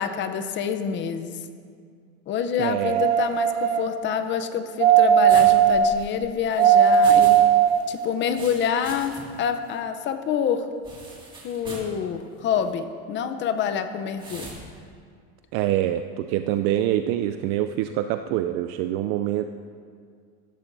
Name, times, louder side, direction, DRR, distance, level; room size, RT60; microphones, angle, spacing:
voice 1, 0.0-1.4 2.3-7.4 7.9-10.7 11.4-14.5, left 7 dB, 35° left, 9 dB, 0.6 m, -27 dB
voice 2, 2.6-3.1 15.5-19.4, right 12 dB, 55° right, 9 dB, 0.4 m, -25 dB
sound 1, 2.8-3.9 4.8-5.9 6.6-7.8 8.4-8.5, right 9 dB, 90° right, 1.1 m, -17 dB
sound 2, 5.3-7.4 7.7-9.5 9.7-9.8 10.8-11.9 12.5-12.7 14.2-14.6, right 2 dB, 15° right, 2.0 m, -41 dB
14.5 x 13.5 x 2.6 m, 2.1 s
cardioid pair, 150°, 32 cm